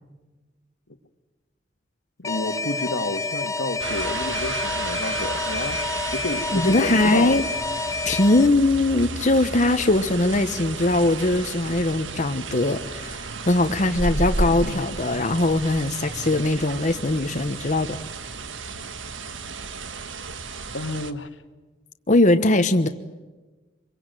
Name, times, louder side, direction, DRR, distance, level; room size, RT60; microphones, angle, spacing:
voice 1, 2.2-5.8 6.1-7.4 14.1-14.8 15.1-15.2 20.7-21.3, left 2 dB, 90° left, 1.9 m, -30 dB
Alarm, 2.2-8.5, left 3 dB, 15° left, 0.9 m, -29 dB
sound 1, 3.8-21.1, right 3 dB, 90° right, 1.6 m, -33 dB
voice 2, 6.5-7.5 8.0-18.0 22.1-22.9, left 2 dB, 40° left, 1.1 m, -21 dB
25.5 x 23.0 x 9.2 m
head